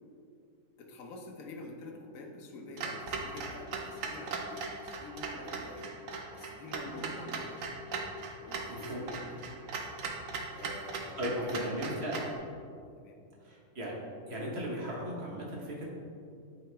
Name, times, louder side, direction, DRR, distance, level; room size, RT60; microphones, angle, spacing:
voice 1, 0.8-7.7 8.4-9.4 10.5-12.4 13.0-13.2, left 2 dB, 65° left, 2 dB, 1.2 m, -47 dB
Clock, 2.8-12.4, right 4 dB, 65° right, 1.0 m, -39 dB
voice 2, 8.7-9.0 11.2-12.1 13.4-13.9 14.3-15.9, equal, 45° right, -4 dB, 1.3 m, -36 dB
8.6 x 3.9 x 3.3 m, 2.4 s
omnidirectional pair, 1.6 m